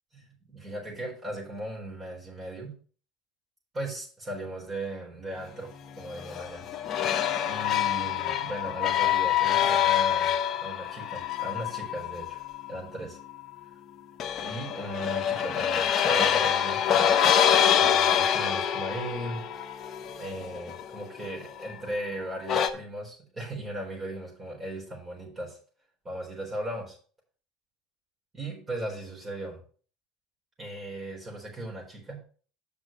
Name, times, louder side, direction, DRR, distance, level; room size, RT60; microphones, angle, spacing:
voice 1, 0.1-2.7 3.7-6.6 7.4-10.4 10.6-12.4 12.7-13.2 14.4-17.2 17.7-19.4 20.2-25.6 26.0-27.0 28.3-29.6 30.6-32.2, right 1 dB, 25° right, -3 dB, 4.2 m, -37 dB
sound 1, 6.0-12.7 14.2-21.8 22.4-22.7, left 9 dB, 45° left, 1.0 m, -26 dB
7.2 x 6.0 x 5.5 m, 0.43 s
supercardioid pair, 95°, 0 cm